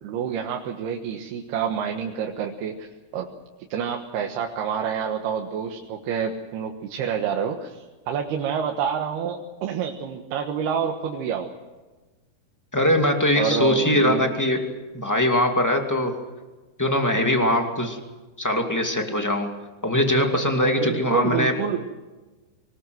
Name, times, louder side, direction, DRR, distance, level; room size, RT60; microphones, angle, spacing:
voice 1, 0.0-3.3 3.7-11.5 13.4-14.3 20.8-21.9, right 7 dB, 85° right, 2 dB, 3.4 m, -28 dB
voice 2, 12.7-14.6 14.9-16.2 16.8-18.0 18.4-19.5 19.8-21.5, left 1 dB, 5° left, 3 dB, 1.4 m, -21 dB
25.0 x 20.5 x 7.9 m, 1.2 s
omnidirectional pair, 4.5 m